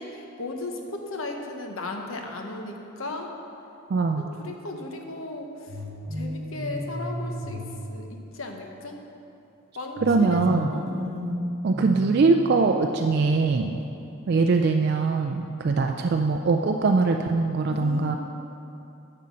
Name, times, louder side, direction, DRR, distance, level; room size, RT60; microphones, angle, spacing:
voice 1, 0.0-3.3 4.2-5.8 6.1-7.6 7.9-9.0 9.7-11.3 13.7-13.9 17.7-18.2, left 2 dB, 70° left, 3 dB, 1.0 m, -36 dB
voice 2, 3.9-4.2 10.0-10.7 11.6-13.8 14.3-18.2, right 4 dB, 50° right, 4 dB, 0.3 m, -22 dB
sound 1, 5.7-8.8 10.0-12.9, equal, 75° right, 0.9 m, -34 dB
7.7 x 5.6 x 7.4 m, 2.7 s
head